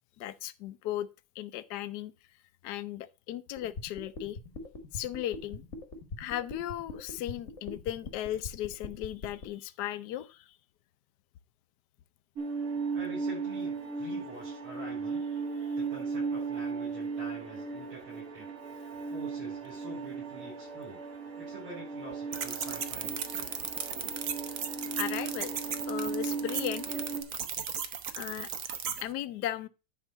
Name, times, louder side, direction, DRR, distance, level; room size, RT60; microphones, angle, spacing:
voice 1, 0.2-1.1 1.4-2.1 2.6-4.4 4.9-5.6 6.2-10.4 25.0-25.5 25.9-27.0 28.1-28.5 29.0-29.7, left 13 dB, 70° left, 1.0 m, -36 dB
sound 1, 3.6-9.5, left 3 dB, 40° left, 1.3 m, -41 dB
sound 2, 12.4-27.2, right 5 dB, 40° right, 1.8 m, -36 dB
voice 2, 12.9-15.2 15.8-18.5 19.1-21.0 21.4-23.5, right 2 dB, 75° right, 5.8 m, -46 dB
sound 3, 22.3-29.0, right 8 dB, 60° right, 0.9 m, -36 dB
10.5 x 3.8 x 5.3 m
omnidirectional pair, 2.4 m